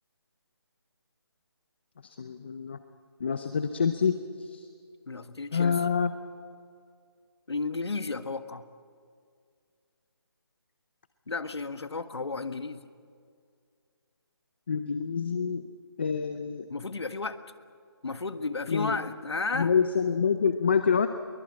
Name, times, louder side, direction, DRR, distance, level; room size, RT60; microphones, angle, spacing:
voice 1, 2.0-2.8 3.2-4.7 5.5-6.1 14.7-15.6 16.0-16.7 18.7-18.9 19.5-21.1, left 6 dB, 25° left, 10 dB, 0.7 m, -27 dB
voice 2, 5.1-5.8 7.5-8.6 11.3-12.9 16.7-17.4 18.0-19.7, left 3 dB, 75° left, 11 dB, 1.5 m, -33 dB
23.0 x 20.0 x 8.7 m, 2.2 s
figure-of-eight pair, 170°, 14 cm